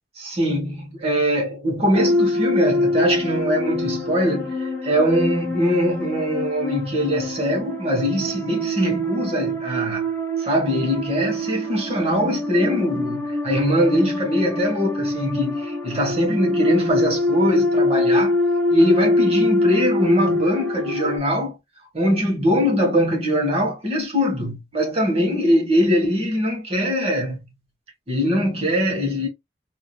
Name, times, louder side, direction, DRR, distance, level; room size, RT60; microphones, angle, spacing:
voice 1, 0.2-10.1 10.4-18.4 18.7-21.6 21.9-27.4 28.1-29.3, equal, 30° right, 1.3 m, -22 dB
sound 1, 1.9-21.2, left 1 dB, 10° left, 1.0 m, -24 dB
3.5 x 2.8 x 2.2 m
head